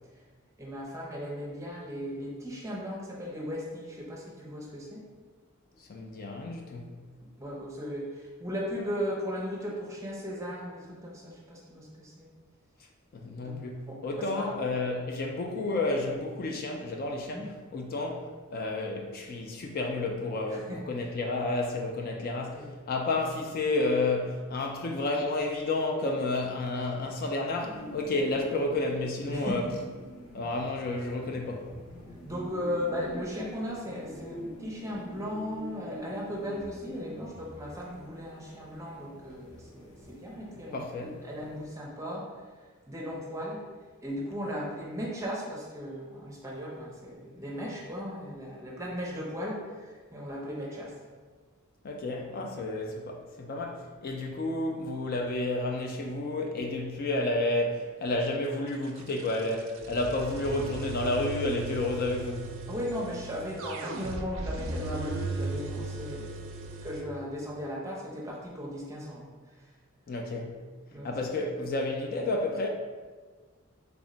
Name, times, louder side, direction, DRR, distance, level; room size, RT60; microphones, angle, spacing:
voice 1, 0.6-5.1 7.4-12.3 13.4-13.6 13.9-14.6 17.3-17.5 20.5-20.8 22.5-22.7 29.3-29.6 32.3-42.3 42.9-43.6 44.0-50.9 62.7-66.3 66.8-69.4 70.9-71.1, equal, 15° right, 0.6 m, -37 dB
voice 2, 5.8-6.9 13.1-18.3 18.5-29.7 30.3-31.7 40.7-41.2 51.8-62.5 70.1-70.6 71.0-72.7, left 2 dB, 45° left, 0.3 m, -31 dB
sound 1, 27.6-41.7, equal, 90° left, 0.7 m, -46 dB
sound 2, 58.4-67.0, right 3 dB, 65° right, 0.4 m, -37 dB
3.5 x 2.1 x 3.7 m
head